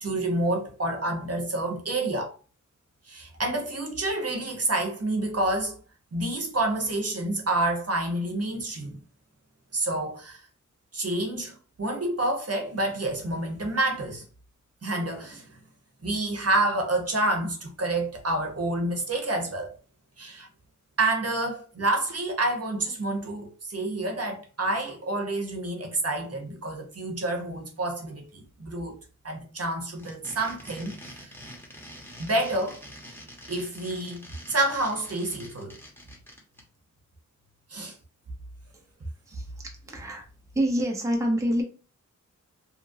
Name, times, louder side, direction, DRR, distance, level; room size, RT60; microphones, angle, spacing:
voice 1, 0.0-2.3 3.1-5.8 6.1-9.0 9.7-10.4 10.9-14.2 14.8-15.5 16.0-19.7 20.2-20.5 21.0-29.0 29.2-31.3 32.2-32.8 33.5-35.7 37.7-38.0, right 2 dB, 50° right, 0.8 m, -28 dB
sound 1, 29.9-36.6, equal, 5° left, 1.1 m, -46 dB
voice 2, 39.3-40.3 40.5-41.6, equal, 10° right, 0.6 m, -27 dB
2.9 x 2.5 x 2.6 m
wide cardioid pair, 70°, 31 cm